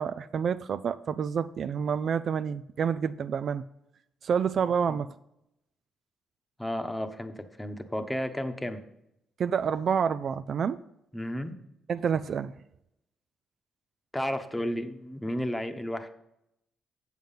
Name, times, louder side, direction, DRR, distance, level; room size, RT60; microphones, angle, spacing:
voice 1, 0.0-3.6 4.2-5.1 9.4-10.8 11.9-12.5, right 7 dB, 55° right, 13 dB, 0.4 m, -28 dB
voice 2, 6.6-8.8 11.1-11.6 14.1-16.1, equal, 10° left, 7 dB, 1.0 m, -32 dB
7.7 x 7.3 x 5.5 m, 0.80 s
cardioid pair, 90°, 0 cm